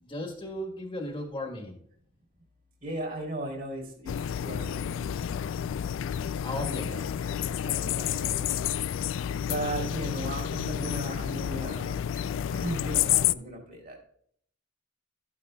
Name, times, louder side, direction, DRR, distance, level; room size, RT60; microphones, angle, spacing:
voice 1, 0.0-1.8 6.4-6.9, left 1 dB, 25° left, 3 dB, 1.3 m, -36 dB
voice 2, 2.8-4.1 4.4-5.1 6.6-7.0 7.6-8.6 9.3-11.9 12.5-14.0, right 1 dB, 50° right, 1 dB, 3.4 m, -36 dB
sound 1, 4.1-13.3, left 10 dB, 70° left, 0.3 m, -30 dB
13.0 x 9.6 x 2.3 m, 0.63 s
head